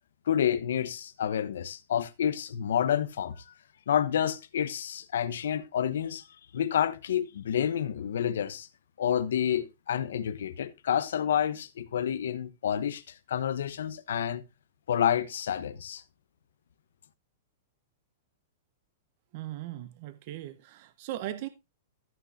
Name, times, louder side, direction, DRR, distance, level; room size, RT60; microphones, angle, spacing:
voice 1, 0.3-3.4 3.9-6.2 6.5-8.7 9.0-13.0 13.3-14.4 14.9-16.0, left 9 dB, 85° left, 1.0 m, -29 dB
voice 2, 19.3-21.5, right 14 dB, 35° right, 0.6 m, -38 dB
14.0 x 8.2 x 2.7 m
supercardioid pair, 180°, 0 cm